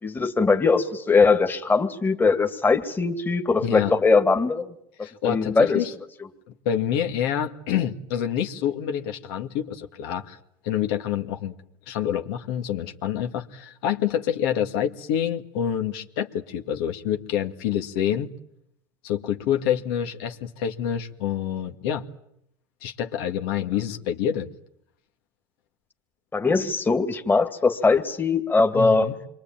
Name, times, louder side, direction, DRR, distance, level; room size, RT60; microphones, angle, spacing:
voice 1, 0.0-4.7 5.2-5.8 26.3-29.1, left 4 dB, 15° left, 6 dB, 2.3 m, -21 dB
voice 2, 3.6-3.9 5.0-5.9 6.7-10.4 10.6-11.5 11.9-18.3 19.0-22.0 22.8-24.5 28.7-29.2, left 9 dB, 70° left, 4 dB, 2.1 m, -27 dB
27.5 x 23.5 x 9.0 m, 0.74 s
supercardioid pair, 110°, 13 cm